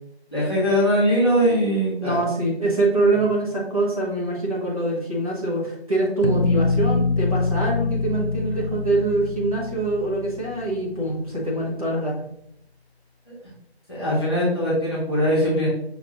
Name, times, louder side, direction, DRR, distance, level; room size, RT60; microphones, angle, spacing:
voice 1, 0.3-2.2 13.3-13.4 13.9-15.7, equal, 25° left, -7 dB, 1.0 m, -21 dB
voice 2, 2.0-12.2, right 2 dB, 35° right, -5 dB, 1.0 m, -24 dB
sound 1, 6.2-11.1, left 3 dB, 60° left, 0.4 m, -25 dB
5.7 x 2.5 x 2.8 m, 0.73 s
figure-of-eight pair, 170°, 33 cm